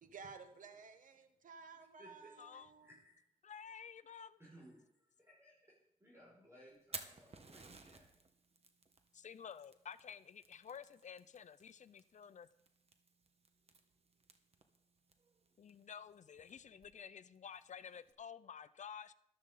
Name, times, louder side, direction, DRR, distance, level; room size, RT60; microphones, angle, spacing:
voice 1, 0.0-2.9, right 5 dB, 70° right, 8 dB, 1.1 m, -54 dB
voice 2, 2.0-3.2 4.4-4.9 5.2-8.1, right 1 dB, 20° right, -6 dB, 5.7 m, -62 dB
voice 3, 3.4-4.4 9.1-12.5 15.6-19.1, left 7 dB, 60° left, 13 dB, 0.6 m, -52 dB
Fire, 6.7-18.1, right 4 dB, 45° right, 1.3 m, -57 dB
14.0 x 12.5 x 3.9 m, 0.78 s
cardioid pair, 75°, 14 cm